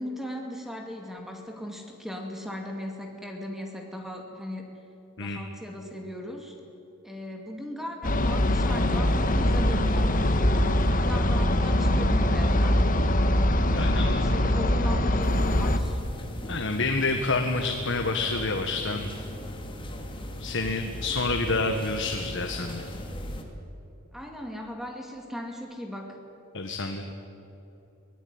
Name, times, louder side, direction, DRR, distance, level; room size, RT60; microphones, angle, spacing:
voice 1, 0.0-4.7 5.2-6.6 7.0-12.9 13.7-16.0 24.1-26.2, equal, ahead, 2 dB, 2.3 m, -37 dB
sound 1, 8.0-15.8, left 1 dB, 40° left, 1.5 m, -23 dB
voice 2, 13.7-14.1 16.4-19.3 20.4-23.0 26.5-27.0, left 3 dB, 60° left, 4 dB, 1.6 m, -28 dB
sound 2, 15.2-23.4, left 1 dB, 25° left, 2.5 m, -39 dB
24.5 x 17.5 x 9.7 m, 2.9 s
head